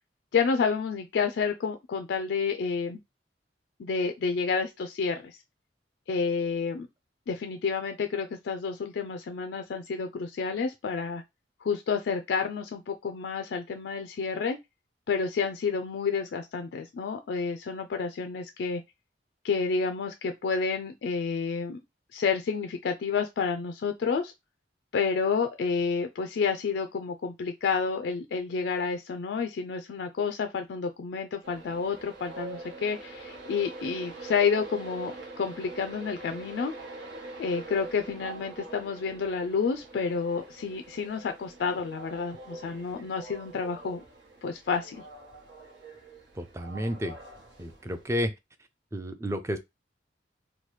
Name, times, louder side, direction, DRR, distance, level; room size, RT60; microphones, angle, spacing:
voice 1, 0.3-3.0 3.8-5.4 6.1-6.9 7.3-11.2 11.6-14.6 15.1-18.8 19.4-21.8 22.1-24.3 24.9-36.7 37.4-44.0 44.4-45.0, left 5 dB, 70° left, 0.3 m, -30 dB
Train, 31.4-48.0, right 3 dB, 85° right, 1.1 m, -44 dB
voice 2, 46.4-47.2 47.6-48.3 48.9-49.6, equal, 15° right, 0.3 m, -31 dB
3.0 x 2.2 x 3.1 m
head